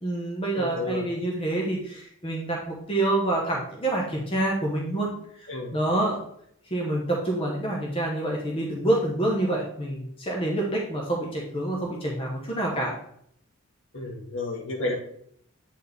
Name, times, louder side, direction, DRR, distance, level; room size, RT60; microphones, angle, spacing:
voice 1, 0.0-5.1 5.7-6.2 6.7-12.9, right 1 dB, 25° left, -2 dB, 1.1 m, -27 dB
voice 2, 0.5-1.1 5.5-5.8 13.9-14.9, left 2 dB, 65° left, -2 dB, 1.8 m, -31 dB
8.4 x 4.3 x 3.5 m, 0.67 s
head